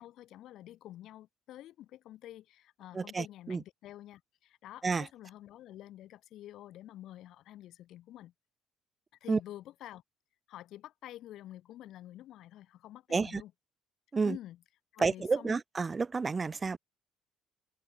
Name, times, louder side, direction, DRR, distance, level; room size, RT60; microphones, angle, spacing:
voice 1, 0.0-8.3 9.2-10.0 10.5-13.5 14.2-14.6 14.9-15.6, left 13 dB, 70° left, 3.4 m, -49 dB
voice 2, 2.9-3.6 4.8-5.1 9.3-9.4 13.1-13.4 14.1-14.4 15.0-16.8, right 4 dB, 25° right, 0.5 m, -30 dB
supercardioid pair, 90°, 0 cm